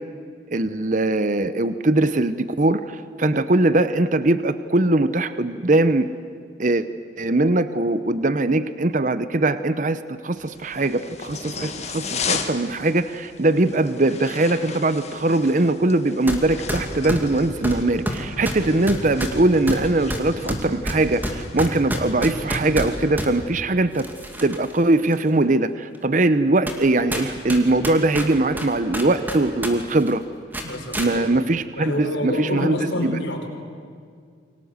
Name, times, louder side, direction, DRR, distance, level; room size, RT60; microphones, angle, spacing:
voice 1, 0.5-6.1 6.6-6.9 7.2-24.1 24.4-30.2 31.0-33.2, right 2 dB, 40° right, 13 dB, 0.7 m, -21 dB
sound 1, 10.4-21.6, left 6 dB, 35° left, 1.8 m, -36 dB
sound 2, 16.3-16.4 16.7-23.3 23.9-24.7 25.1-25.2 25.9-26.0 26.7-26.8 27.1-29.7 30.0-30.1 30.5-31.1, equal, 10° right, 2.5 m, -28 dB
voice 2, 30.6-31.5 31.7-33.5, left 1 dB, 70° left, 1 dB, 4.6 m, -28 dB
29.0 x 24.0 x 8.1 m, 2.1 s
head